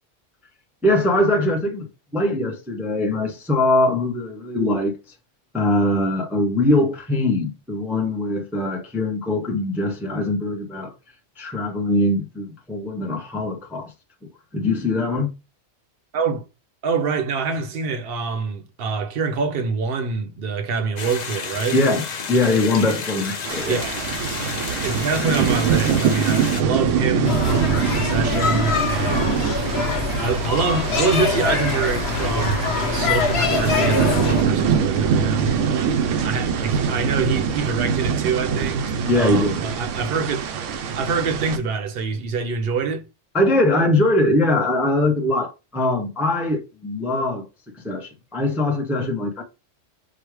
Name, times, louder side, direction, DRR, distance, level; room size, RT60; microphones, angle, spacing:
voice 1, 0.8-1.9 2.1-4.9 5.5-10.9 11.4-13.9 14.2-15.3 21.7-23.8 39.1-39.6 43.3-47.5 47.8-49.4, left 1 dB, ahead, 0.5 m, -22 dB
voice 2, 16.1-16.4 16.8-21.8 23.7-23.9 24.8-29.7 30.2-40.4 40.9-43.0, right 5 dB, 55° right, 0.8 m, -25 dB
sound 1, 21.0-26.6, left 5 dB, 45° left, 0.6 m, -31 dB
sound 2, 23.4-41.6, right 7 dB, 90° right, 1.0 m, -24 dB
sound 3, 27.2-34.4, left 4 dB, 60° left, 1.0 m, -23 dB
4.9 x 2.2 x 4.6 m
omnidirectional pair, 1.3 m